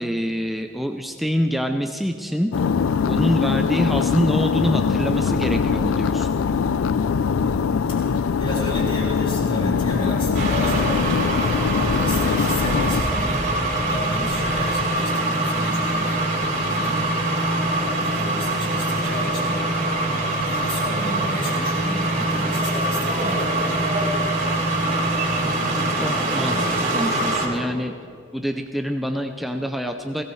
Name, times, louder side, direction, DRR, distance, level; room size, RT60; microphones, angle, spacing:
voice 1, 0.0-2.5 3.1-6.3 26.0-27.9 28.3-30.2, equal, ahead, 4 dB, 0.5 m, -25 dB
sound 1, 2.5-13.0, left 6 dB, 70° left, 0.4 m, -22 dB
sound 2, 5.1-14.7, equal, 20° right, 1.1 m, -32 dB
voice 2, 7.9-10.9 11.4-13.5 13.8-16.2 16.7-17.1 18.0-19.6 20.5-24.0, left 1 dB, 25° left, -4 dB, 3.0 m, -33 dB
sound 3, 10.3-27.5, right 1 dB, 45° right, 4.3 m, -23 dB
21.5 x 17.5 x 3.2 m, 2.4 s
head